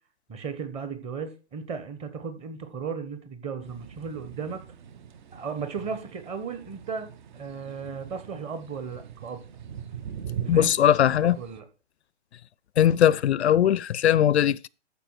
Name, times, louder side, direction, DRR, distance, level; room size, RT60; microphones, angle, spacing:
voice 1, 0.3-4.6 5.3-9.4 10.4-10.7 11.4-11.6, right 5 dB, 15° right, 1.2 m, -35 dB
sound 1, 3.6-11.6, right 8 dB, 40° right, 0.9 m, -41 dB
voice 2, 10.5-11.4 12.8-14.7, left 10 dB, 70° left, 0.5 m, -20 dB
13.5 x 4.9 x 4.7 m
hypercardioid pair, 140°, 35 cm